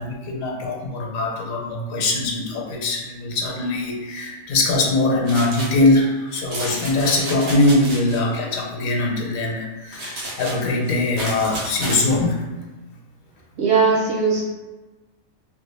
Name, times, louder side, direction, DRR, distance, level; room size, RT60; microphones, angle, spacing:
voice 1, 0.0-12.4, left 2 dB, 75° left, 0 dB, 1.0 m, -22 dB
sound 1, 5.3-5.8 6.3-8.2 9.9-12.0, right 1 dB, 80° right, 1.4 m, -31 dB
voice 2, 13.6-14.4, right 5 dB, 60° right, -3 dB, 0.8 m, -18 dB
3.1 x 2.3 x 3.2 m, 1.2 s
omnidirectional pair, 1.5 m